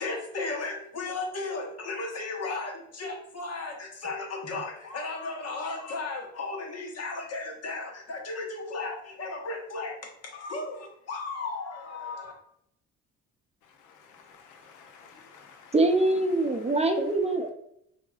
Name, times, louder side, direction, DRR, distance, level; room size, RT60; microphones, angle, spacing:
voice 1, 0.0-10.0 10.2-12.3, left 3 dB, 55° left, 1.3 m, -35 dB
voice 2, 13.6-17.2, left 5 dB, 85° left, 0.7 m, -53 dB
voice 3, 15.7-17.5, right 2 dB, 20° right, 0.6 m, -24 dB
5.8 x 2.8 x 2.4 m
cardioid pair, 90°, 30 cm